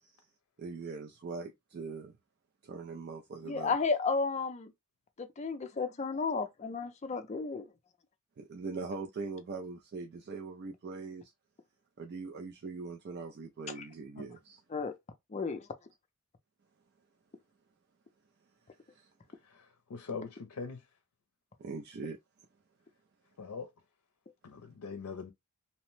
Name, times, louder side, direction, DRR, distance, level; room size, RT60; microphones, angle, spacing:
voice 1, 0.6-2.2 2.6-3.7 8.4-11.3 12.0-14.6 18.9-19.1 21.6-22.2, right 4 dB, 45° right, 0.4 m, -41 dB
voice 2, 3.5-4.7 5.2-7.7 14.7-14.9 15.3-15.6, left 4 dB, 30° left, 0.4 m, -33 dB
voice 3, 19.9-20.8 23.4-23.7 24.4-25.3, left 5 dB, 90° left, 0.5 m, -41 dB
2.8 x 2.1 x 3.0 m
head